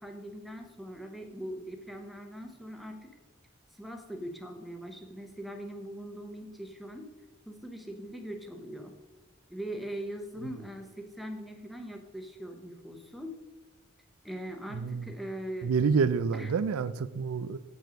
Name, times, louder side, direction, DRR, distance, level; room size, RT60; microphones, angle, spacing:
voice 1, 0.0-3.1 3.7-7.1 7.5-9.0 9.5-13.4 14.2-15.7 16.3-16.5, equal, ahead, 0.8 m, -41 dB
voice 2, 14.7-15.1 15.6-17.6, right 5 dB, 80° right, 0.4 m, -28 dB
7.6 x 5.5 x 5.0 m
head